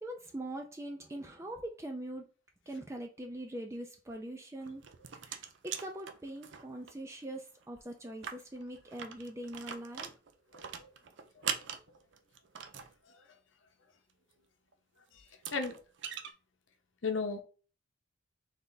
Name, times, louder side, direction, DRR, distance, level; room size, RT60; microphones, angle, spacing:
voice 1, 0.0-2.3 2.7-4.8 5.2-10.1, right 1 dB, 15° right, 3 dB, 0.4 m, -42 dB
sound 1, 4.6-6.9 7.2-7.3 7.6-7.7 8.1-12.9 14.7-14.8 15.3-16.3, right 8 dB, 70° right, 0.5 m, -42 dB
voice 2, 11.4-11.7 13.2-13.3 15.1-15.2 15.5-15.7 17.0-17.4, left 4 dB, 80° left, 5 dB, 0.8 m, -35 dB
3.5 x 3.3 x 3.9 m, 0.36 s
head